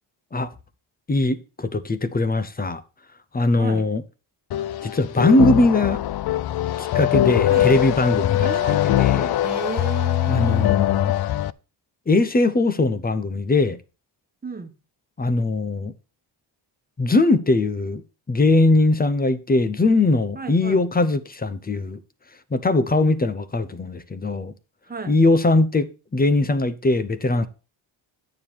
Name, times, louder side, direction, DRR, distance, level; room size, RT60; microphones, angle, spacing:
voice 1, 1.1-2.8 3.3-4.0 4.8-6.0 6.8-8.5 8.8-9.4 10.3-11.1 12.1-13.8 15.2-15.9 17.0-18.0 18.3-22.0 22.5-24.5 25.1-27.5, left 2 dB, 20° left, 0.8 m, -20 dB
voice 2, 3.5-3.9 7.5-7.7 8.4-8.8 9.4-10.7 14.4-14.7 20.3-20.8 24.9-25.2, right 5 dB, 20° right, 1.4 m, -33 dB
sound 1, 4.5-11.5, left 13 dB, 55° left, 0.5 m, -21 dB
9.4 x 7.1 x 4.6 m
cardioid pair, 115°, 48 cm